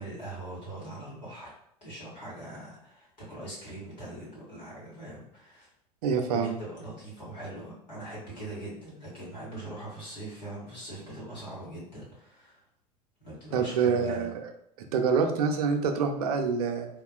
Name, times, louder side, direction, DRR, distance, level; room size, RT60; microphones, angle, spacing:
voice 1, 0.0-1.5 1.8-5.7 6.3-12.6 13.2-14.3, right 1 dB, 90° left, -7 dB, 1.5 m, -41 dB
voice 2, 6.0-6.5 13.5-14.5 14.8-16.9, right 5 dB, 65° right, 6 dB, 0.5 m, -26 dB
3.5 x 2.4 x 2.3 m, 0.72 s
figure-of-eight pair, 80°, 21 cm